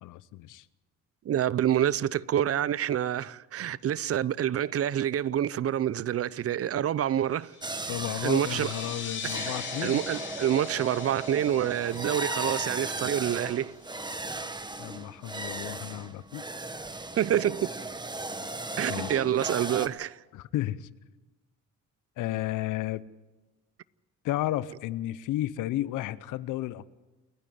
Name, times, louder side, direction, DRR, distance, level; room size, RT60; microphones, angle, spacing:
voice 1, 0.0-0.6 7.9-10.0 14.8-16.5 18.9-19.2 20.3-20.9 22.2-23.0 24.2-26.9, left 14 dB, 90° left, 0.7 m, -33 dB
voice 2, 1.3-7.5 8.2-8.7 9.2-13.7 17.2-17.7 18.8-20.2, right 10 dB, 50° right, 0.6 m, -27 dB
sound 1, 7.5-13.8, left 5 dB, 40° left, 3.3 m, -41 dB
sound 2, 7.6-19.9, right 2 dB, 15° right, 1.3 m, -36 dB
29.0 x 9.9 x 9.4 m
cardioid pair, 90°, 30 cm